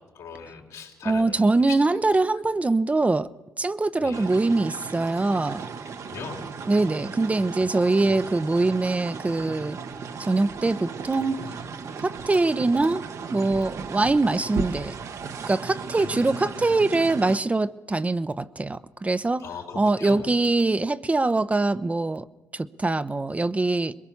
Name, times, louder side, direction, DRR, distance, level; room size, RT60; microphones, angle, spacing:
voice 1, 0.1-1.4 4.0-4.2 6.1-6.5 16.0-16.7 19.4-20.3, left 5 dB, 85° left, 4.0 m, -39 dB
voice 2, 1.0-3.3 3.6-5.6 6.7-9.8 10.2-11.5 12.0-13.0 13.3-15.0 15.5-19.4 19.7-22.3 22.5-23.9, right 2 dB, 25° right, 0.7 m, -23 dB
sound 1, 4.1-17.4, right 5 dB, 65° right, 1.3 m, -36 dB
22.0 x 21.5 x 7.1 m
supercardioid pair, 65°, 6 cm